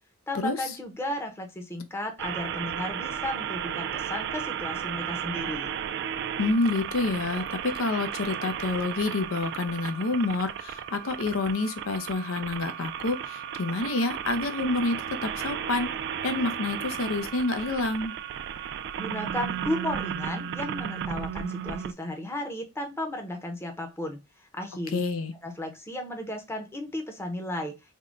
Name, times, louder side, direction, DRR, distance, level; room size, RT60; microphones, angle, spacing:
voice 1, 0.3-5.7 19.0-25.0 25.4-27.7, left 1 dB, 10° left, 0.7 m, -34 dB
sound 1, 2.2-21.9, right 8 dB, 55° right, 0.3 m, -34 dB
voice 2, 6.4-15.9 16.2-18.1 24.9-25.3, left 3 dB, 85° left, 0.6 m, -28 dB
3.5 x 2.1 x 3.7 m
head